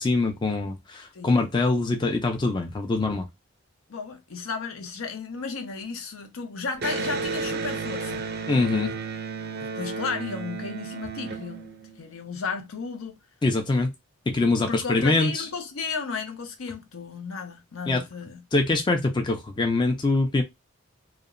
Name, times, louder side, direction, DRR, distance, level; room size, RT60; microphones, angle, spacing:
voice 1, 0.0-3.3 8.5-8.9 13.4-13.9 14.3-15.5 17.9-18.0 18.5-20.4, left 3 dB, 20° left, 0.4 m, -23 dB
voice 2, 3.9-8.2 9.6-11.7 12.0-13.2 13.7-13.9 14.4-18.4, left 5 dB, 80° left, 0.6 m, -34 dB
Electric guitar, 6.8-12.3, right 4 dB, 50° right, 0.4 m, -33 dB
2.8 x 2.1 x 2.4 m
head